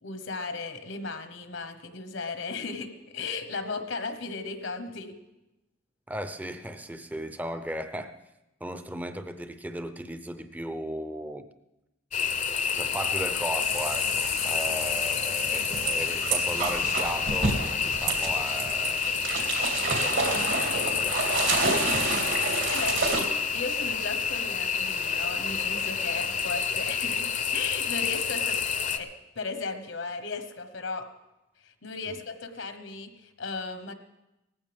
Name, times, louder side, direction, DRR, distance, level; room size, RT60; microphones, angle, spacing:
voice 1, 0.0-5.1 22.4-31.1 31.6-33.9, left 4 dB, 75° left, 8 dB, 1.2 m, -36 dB
voice 2, 6.1-8.1 8.6-11.5 12.7-19.0 19.8-21.7 32.1-32.2, right 1 dB, 10° right, 9 dB, 0.6 m, -36 dB
sound 1, 12.1-29.0, left 6 dB, 40° left, 0.7 m, -29 dB
sound 2, 13.6-23.2, right 3 dB, 75° right, 3.0 m, -30 dB
18.5 x 15.5 x 3.5 m, 0.95 s
head